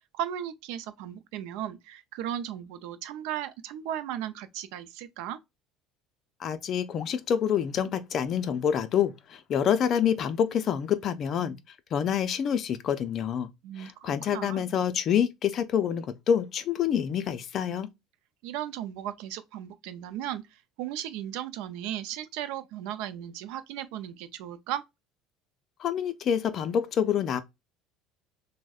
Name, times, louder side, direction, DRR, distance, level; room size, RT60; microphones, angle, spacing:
voice 1, 0.1-5.4 13.6-14.6 18.4-24.8, right 11 dB, 75° right, 0.5 m, -36 dB
voice 2, 6.4-11.6 11.9-13.5 13.8-17.9 25.8-27.4, left 8 dB, 35° left, 0.4 m, -27 dB
6.2 x 2.1 x 2.3 m
cardioid pair, 165°, 0 cm